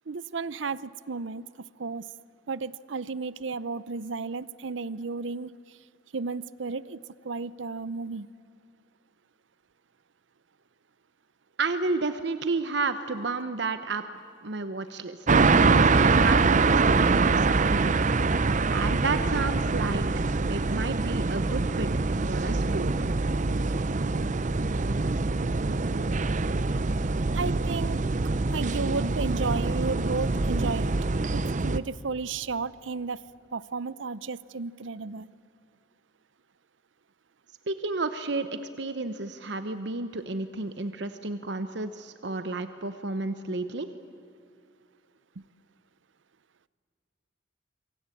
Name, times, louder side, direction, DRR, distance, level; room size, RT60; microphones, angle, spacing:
voice 1, 0.1-1.5 1.8-2.0 2.5-5.8 6.1-7.0 7.2-8.3 27.3-28.0 28.5-31.0 31.3-33.2 33.5-35.3, right 4 dB, 90° right, 18 dB, 0.7 m, -33 dB
voice 2, 11.6-14.0 14.4-15.4 16.0-18.1 18.7-20.1 20.5-21.9 22.3-23.1 37.7-38.5 38.8-43.9, right 3 dB, 65° right, 10 dB, 1.0 m, -31 dB
sound 1, 15.3-31.8, right 3 dB, 40° right, 0.6 m, -24 dB
27.0 x 24.0 x 8.5 m, 2.5 s
head